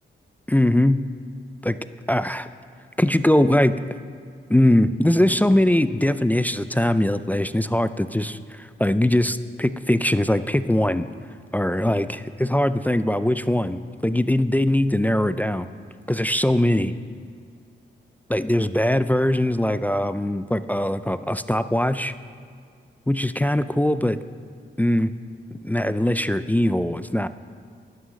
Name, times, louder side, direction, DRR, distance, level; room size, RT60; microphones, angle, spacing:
voice 1, 0.5-1.0 1.6-1.8 2.1-2.5 3.0-3.8 4.5-11.1 11.5-15.7 16.1-16.9 18.3-22.1 23.1-24.2 24.8-25.1 25.5-27.3, left 1 dB, 10° left, 12 dB, 0.4 m, -21 dB
11.0 x 9.2 x 6.4 m, 2.2 s
cardioid pair, 65°, 21 cm